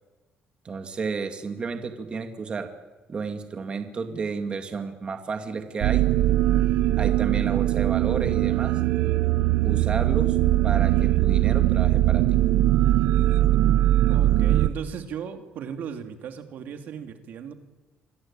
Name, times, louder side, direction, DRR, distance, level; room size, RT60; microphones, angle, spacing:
voice 1, 0.6-2.7 3.1-6.0 7.0-8.8 9.6-10.4 10.6-12.4, right 5 dB, 30° right, 6 dB, 2.2 m, -32 dB
sound 1, 5.8-14.7, right 14 dB, 85° right, 0.8 m, -21 dB
voice 2, 14.1-17.5, right 7 dB, 65° right, 6 dB, 2.6 m, -36 dB
27.0 x 21.5 x 8.9 m, 1.2 s
cardioid pair, 135°, 3 cm